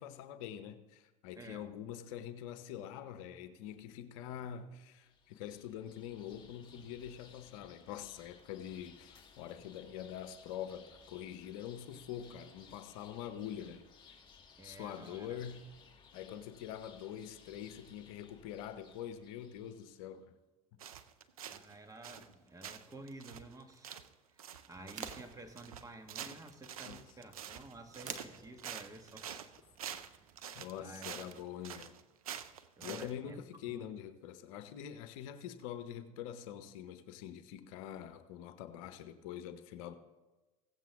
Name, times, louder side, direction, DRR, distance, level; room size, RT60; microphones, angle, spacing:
voice 1, 0.0-13.8 14.1-14.2 14.6-15.7 16.1-20.3 26.8-27.1 30.5-32.0 32.8-40.0, left 10 dB, 70° left, 0.8 m, -45 dB
voice 2, 1.3-1.7 14.6-15.4 21.5-24.0 24.3-29.3 30.8-31.5 32.8-33.4 33.7-33.9, right 2 dB, 20° right, 1.5 m, -52 dB
sound 1, 4.9-20.1, left 6 dB, 25° left, 2.5 m, -60 dB
sound 2, 20.8-21.7 22.0-22.3 22.6-33.1, right 9 dB, 85° right, 0.5 m, -47 dB
sound 3, 24.7-31.1, right 7 dB, 45° right, 1.1 m, -52 dB
16.5 x 7.5 x 3.5 m
hypercardioid pair, 75°, 18 cm